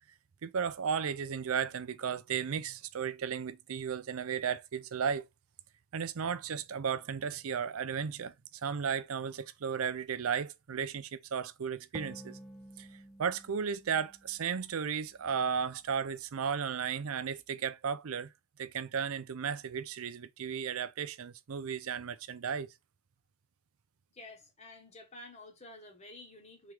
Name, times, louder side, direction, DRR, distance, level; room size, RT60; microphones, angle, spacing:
voice 1, 0.4-5.3 5.9-8.3 8.6-12.4 12.8-12.9 13.2-18.3 18.6-22.7, right 7 dB, 70° right, 0.5 m, -34 dB
sound 1, 11.9-15.4, equal, ahead, 0.4 m, -51 dB
voice 2, 24.1-26.7, left 2 dB, 30° left, 1.4 m, -51 dB
3.6 x 3.1 x 4.5 m
head